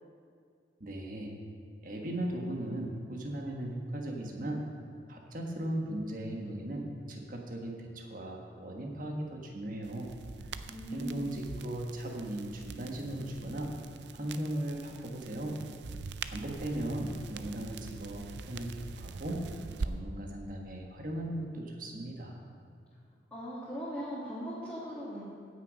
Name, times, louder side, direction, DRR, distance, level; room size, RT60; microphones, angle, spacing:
voice 1, 0.8-1.3 1.8-4.6 5.1-10.1 10.9-13.7 14.1-15.6 16.3-19.4 19.8-22.4, right 1 dB, 45° right, 1 dB, 1.5 m, -37 dB
sound 1, 9.8-19.9, right 4 dB, 70° right, 0.5 m, -44 dB
voice 2, 10.7-11.3 23.3-25.2, equal, 10° left, -11 dB, 1.9 m, -39 dB
16.5 x 6.4 x 5.2 m, 2.2 s
head